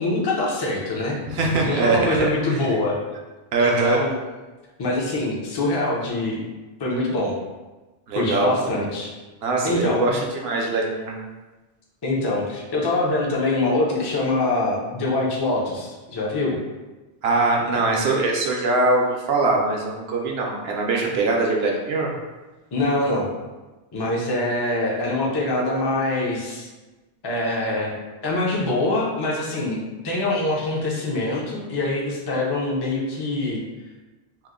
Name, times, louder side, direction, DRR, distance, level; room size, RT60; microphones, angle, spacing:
voice 1, 0.0-1.2 1.6-3.0 3.6-4.2 4.8-6.4 6.8-7.3 8.1-9.1 9.6-10.1 12.0-16.6 22.7-23.3 23.9-26.7 27.2-27.9 28.2-33.6, left 2 dB, 35° left, -3 dB, 0.4 m, -24 dB
voice 2, 1.3-2.2 2.5-2.6 3.5-4.0 8.1-8.7 9.4-11.1 17.2-22.1, right 3 dB, 70° right, 0 dB, 0.8 m, -22 dB
2.9 x 2.0 x 3.6 m, 1.2 s
omnidirectional pair, 1.1 m